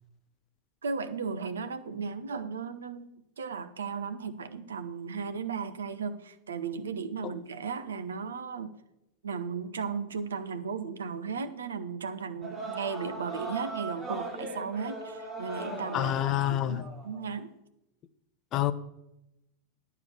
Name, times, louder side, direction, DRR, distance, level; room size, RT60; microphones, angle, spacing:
voice 1, 0.8-8.7 9.2-16.1 16.6-17.5, right 5 dB, 70° right, 0.8 m, -35 dB
sound 1, 12.4-17.2, right 2 dB, 15° right, 2.5 m, -39 dB
voice 2, 15.9-16.8 18.5-18.7, left 13 dB, 35° left, 0.6 m, -27 dB
10.5 x 4.7 x 7.1 m
figure-of-eight pair, 90°, 0 cm